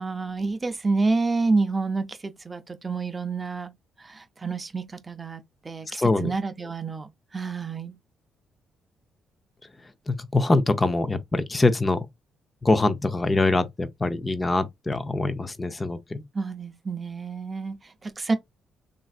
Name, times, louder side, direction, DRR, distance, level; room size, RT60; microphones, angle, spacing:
voice 1, 0.0-3.7 4.0-7.9 16.3-18.4, right 3 dB, 25° right, 0.6 m, -28 dB
voice 2, 6.0-6.3 10.1-12.1 12.6-16.2, left 2 dB, 20° left, 0.6 m, -24 dB
3.2 x 2.5 x 2.4 m
cardioid pair, 90°, 0 cm